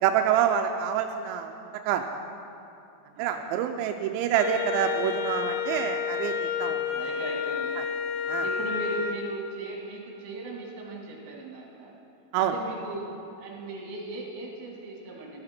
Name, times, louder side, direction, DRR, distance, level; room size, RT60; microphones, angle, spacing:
voice 1, 0.0-1.5 1.9-2.0 3.2-6.8 8.3-8.4 12.3-12.5, right 9 dB, 90° right, 5 dB, 2.9 m, -26 dB
voice 2, 3.1-3.6 6.9-7.7 8.4-11.9 12.3-15.4, right 2 dB, 65° right, -2 dB, 3.8 m, -38 dB
Wind instrument woodwind instrument, 4.3-9.2, left 7 dB, 90° left, 2.2 m, -30 dB
14.0 x 14.0 x 4.4 m, 2.7 s
omnidirectional pair, 5.1 m